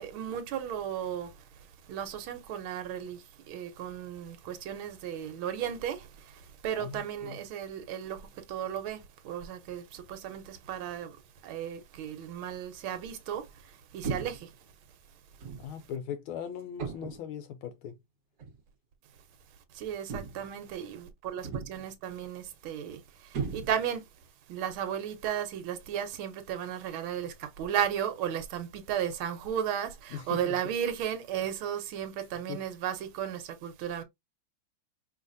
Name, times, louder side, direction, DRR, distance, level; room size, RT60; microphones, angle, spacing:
voice 1, 0.0-11.2 11.4-14.5 19.7-24.1 24.5-34.0, right 9 dB, 75° right, 1.6 m, -35 dB
sound 1, 14.0-14.5 15.4-15.7 16.8-17.3 18.4-18.6 20.1-20.6 21.4-21.9 23.3-24.0, right 5 dB, 55° right, 1.3 m, -37 dB
voice 2, 15.6-17.9 30.1-30.3 32.5-32.6, left 8 dB, 75° left, 1.3 m, -39 dB
4.8 x 3.2 x 2.6 m
omnidirectional pair, 2.4 m